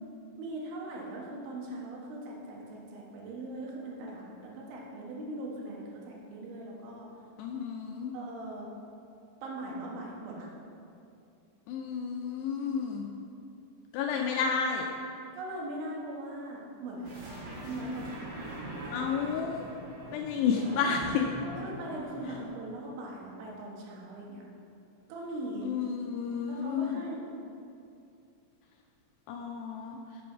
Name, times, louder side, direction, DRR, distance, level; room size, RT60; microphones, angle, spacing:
voice 1, 0.4-7.1 8.1-8.7 9.4-10.5 15.4-17.2 17.6-18.3 21.4-24.5 25.1-25.7 26.5-27.3, right 1 dB, 80° right, -2 dB, 3.9 m, -40 dB
voice 2, 7.4-8.1 11.7-13.1 13.9-14.9 18.9-19.7 20.1-21.3 25.6-27.0 29.3-30.0, left 6 dB, 80° left, 2 dB, 2.5 m, -31 dB
sound 1, 17.0-22.5, right 1 dB, 50° right, 3.0 m, -42 dB
8.3 x 7.8 x 5.9 m, 2.6 s
omnidirectional pair, 5.3 m